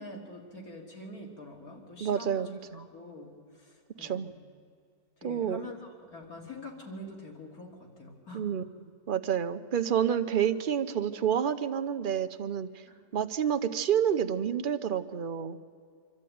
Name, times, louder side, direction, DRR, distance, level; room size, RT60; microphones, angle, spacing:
voice 1, 0.0-4.3 5.2-8.6 12.9-13.0, left 2 dB, 55° left, 0 dB, 3.6 m, -45 dB
voice 2, 2.0-2.9 4.0-4.3 5.2-5.6 8.3-8.6 9.1-12.7 13.1-15.6, right 8 dB, 45° right, 9 dB, 0.7 m, -29 dB
25.5 x 13.0 x 9.3 m, 2.2 s
omnidirectional pair, 1.8 m